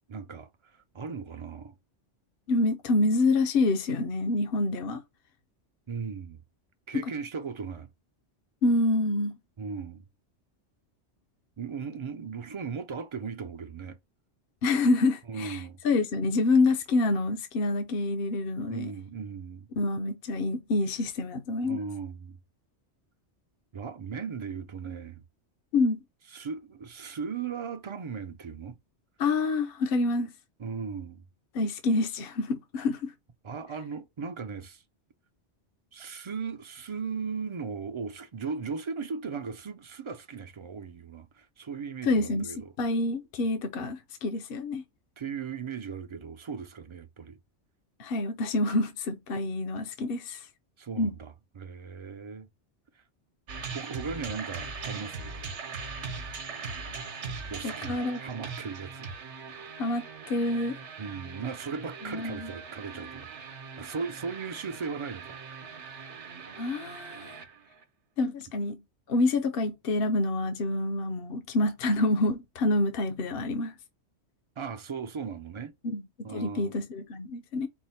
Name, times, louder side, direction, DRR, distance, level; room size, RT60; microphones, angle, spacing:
voice 1, 0.1-1.8 5.9-6.4 6.9-7.9 9.6-10.0 11.6-14.0 15.3-15.8 18.7-19.7 21.6-22.4 23.7-25.2 26.3-28.8 30.6-31.2 33.4-34.8 35.9-42.7 45.2-47.4 50.8-52.5 52.9-53.0 53.7-55.3 57.5-59.1 61.0-63.3 63.8-65.4 65.7-65.8 74.6-75.7 76.2-76.8, right 5 dB, 45° right, 0.4 m, -37 dB
voice 2, 2.5-5.0 8.6-9.4 14.6-15.6 15.8-18.9 19.8-21.8 25.7-26.0 29.2-30.3 31.5-33.1 42.0-44.8 48.0-50.5 51.0-51.1 57.6-58.2 59.8-60.7 62.0-62.5 66.6-67.4 68.2-68.8 69.1-73.7 75.8-77.7, left 2 dB, 60° left, 0.8 m, -27 dB
sound 1, 53.5-67.8, right 5 dB, 75° right, 1.1 m, -40 dB
4.7 x 2.1 x 4.2 m
omnidirectional pair, 1.2 m